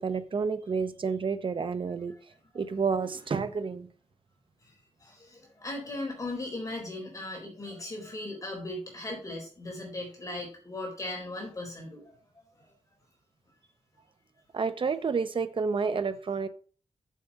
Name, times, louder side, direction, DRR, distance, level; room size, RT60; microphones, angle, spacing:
voice 1, 0.0-2.1 2.5-3.9 14.5-16.5, right 5 dB, 45° right, 11 dB, 0.8 m, -30 dB
voice 2, 5.0-12.7, left 2 dB, 30° left, -1 dB, 4.3 m, -38 dB
7.5 x 6.9 x 5.3 m, 0.40 s
wide cardioid pair, 135°, 12 cm